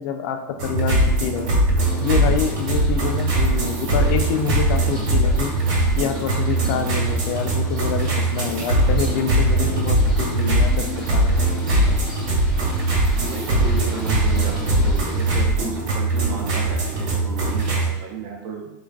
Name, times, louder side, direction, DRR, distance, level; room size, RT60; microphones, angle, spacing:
voice 1, 0.0-1.6 2.0-5.5 6.0-11.5, left 7 dB, 65° left, 7 dB, 0.4 m, -27 dB
sound 1, 0.6-17.9, right 1 dB, 65° right, 1.2 m, -21 dB
sound 2, 1.8-15.4, equal, 5° left, 1.0 m, -39 dB
voice 2, 13.2-18.7, right 4 dB, 50° right, 1 dB, 0.6 m, -33 dB
3.1 x 2.4 x 2.4 m, 0.88 s
supercardioid pair, 130°, 10 cm